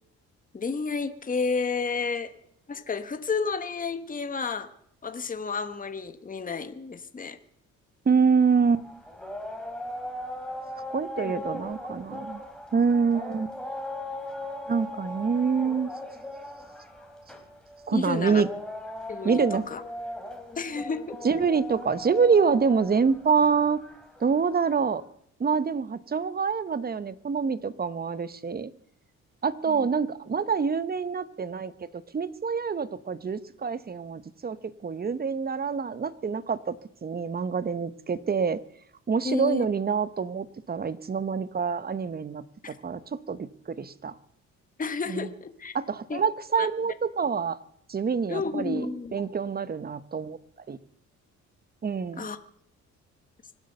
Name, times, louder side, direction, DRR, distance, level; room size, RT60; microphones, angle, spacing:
voice 1, 0.5-2.3 2.7-4.7 5.0-7.4 11.2-11.4 17.9-18.4 19.1-19.8 20.6-21.2 29.7-29.9 39.2-39.7 42.6-42.8 44.8-45.7 46.1-46.2 46.6-46.7 48.3-49.2 52.2-52.4, left 4 dB, 25° left, 9 dB, 1.3 m, -31 dB
voice 2, 8.1-8.8 10.9-12.4 12.7-13.5 14.7-15.9 17.9-18.5 19.2-19.6 21.2-23.8 24.2-25.0 25.4-28.7 29.4-34.6 34.8-38.6 39.1-44.1 45.1-45.3 45.7-47.6 47.9-48.9 49.1-50.4 50.7-50.8 51.8-52.3, right 5 dB, 30° right, 15 dB, 1.0 m, -26 dB
sound 1, 8.5-24.8, left 1 dB, 5° left, 3.2 m, -39 dB
25.0 x 8.4 x 6.7 m, 0.70 s
cardioid pair, 90°, 30 cm